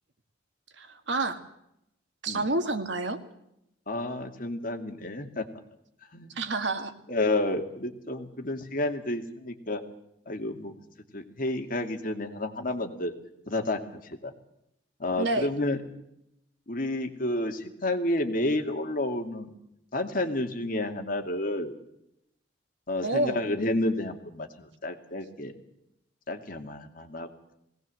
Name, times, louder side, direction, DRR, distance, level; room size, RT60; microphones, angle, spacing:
voice 1, 0.8-1.4 2.2-3.2 6.4-6.9 15.2-15.5 23.0-23.4, right 2 dB, 75° right, 8 dB, 2.0 m, -28 dB
voice 2, 3.9-5.4 6.1-6.3 7.1-9.8 10.3-10.8 11.1-13.1 13.5-14.3 15.0-15.8 16.7-19.5 19.9-21.7 22.9-25.5 26.3-27.5, left 1 dB, 50° left, 5 dB, 2.4 m, -30 dB
20.5 x 18.0 x 7.8 m, 0.80 s
head